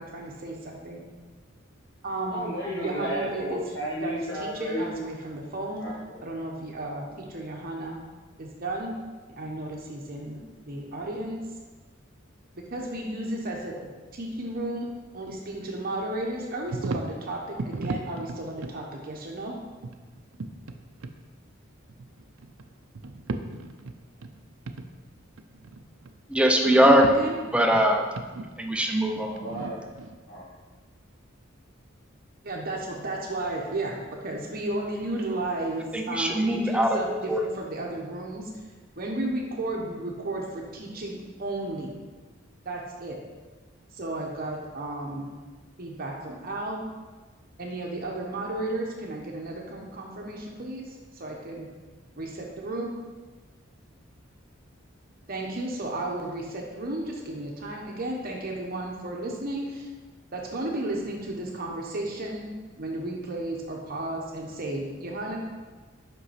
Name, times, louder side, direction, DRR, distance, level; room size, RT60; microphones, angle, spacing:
voice 1, 0.0-1.0 2.0-2.5 2.8-3.6 4.0-5.9 6.2-8.0 8.4-9.0 9.4-11.4 12.7-13.8 14.1-14.9 15.1-19.5 26.6-27.4 32.4-38.6 39.0-41.9 42.6-43.2 43.9-45.3 45.8-46.8 47.6-51.7 52.2-52.9 55.3-59.9 60.3-62.4 62.8-65.4, right 2 dB, 45° right, -1 dB, 0.9 m, -33 dB
voice 2, 2.3-5.0 5.8-6.2 29.1-29.8 30.3-30.5, equal, 70° left, -7 dB, 1.5 m, -33 dB
sound 1, 16.7-17.2 17.6-18.7 19.8-20.8 21.0-21.2 21.9-22.7 22.9-24.4 24.7-24.8 25.2-26.2 26.7-27.1 27.5-30.2, right 3 dB, 75° right, 0.5 m, -35 dB
voice 3, 26.3-27.0 27.5-28.1 28.6-29.3 35.9-37.0 37.3-37.4, equal, 5° right, 3 dB, 0.5 m, -21 dB
5.6 x 5.3 x 5.7 m, 1.3 s
head